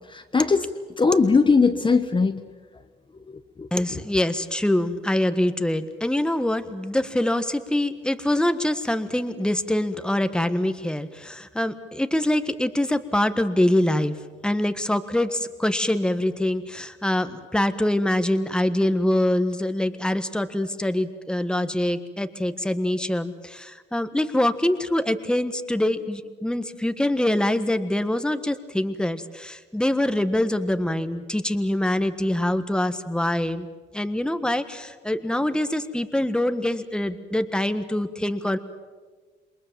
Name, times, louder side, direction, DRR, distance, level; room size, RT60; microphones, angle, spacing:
voice 1, 0.1-0.7 1.0-2.4 3.3-3.7, left 4 dB, 25° left, 6 dB, 1.2 m, -20 dB
voice 2, 3.7-14.2 14.4-33.7 33.9-38.6, left 1 dB, 5° left, 10 dB, 1.5 m, -24 dB
28.0 x 22.0 x 7.6 m, 1.4 s
cardioid pair, 90°, 20 cm